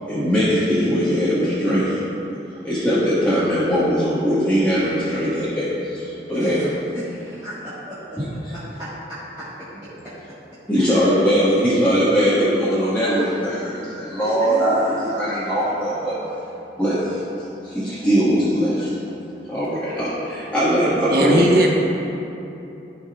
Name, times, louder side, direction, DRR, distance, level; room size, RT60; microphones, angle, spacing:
voice 1, 0.1-2.0 2.6-6.6 10.7-14.8 15.1-16.1 16.8-17.2 17.6-18.9 19.5-21.5, equal, 10° left, -13 dB, 1.5 m, -20 dB
voice 2, 6.3-8.2 8.5-10.2 10.8-11.1 12.3-13.6 14.2-15.1, equal, 25° right, -14 dB, 1.6 m, -33 dB
voice 3, 21.1-21.7, right 1 dB, 55° right, 0 dB, 1.0 m, -17 dB
15.0 x 5.4 x 2.4 m, 2.8 s
head